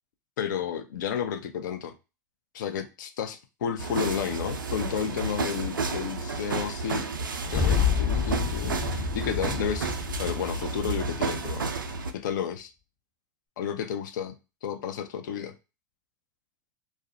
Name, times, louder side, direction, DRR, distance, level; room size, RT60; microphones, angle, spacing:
voice 1, 0.4-1.9 2.5-7.1 7.5-11.7 12.1-12.7 13.6-14.3 14.6-15.5, left 8 dB, 70° left, 7 dB, 0.5 m, -32 dB
sound 1, 3.8-12.1, right 4 dB, 90° right, 0.4 m, -32 dB
sound 2, 7.4-11.7, left 7 dB, 40° left, 0.8 m, -29 dB
2.3 x 2.1 x 2.6 m, 0.28 s
hypercardioid pair, 90°, 11 cm